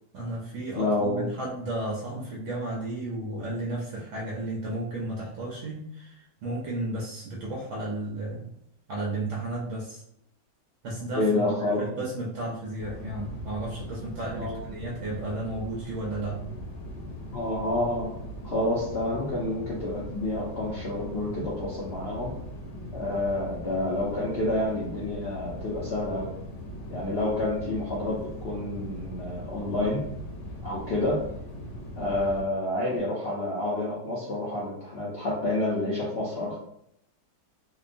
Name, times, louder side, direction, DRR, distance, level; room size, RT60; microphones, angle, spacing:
voice 1, 0.1-8.5 8.9-10.0 10.8-16.5, right 1 dB, 70° right, -4 dB, 0.7 m, -33 dB
voice 2, 0.8-1.3 11.1-11.8 14.4-14.6 17.3-18.1 18.4-22.3 22.9-26.3 26.9-30.0 30.6-31.2 32.0-36.6, left 1 dB, 85° left, -6 dB, 0.5 m, -29 dB
sound 1, 12.8-32.4, equal, 65° left, 1.1 m, -40 dB
2.9 x 2.2 x 2.5 m, 0.75 s
omnidirectional pair, 1.9 m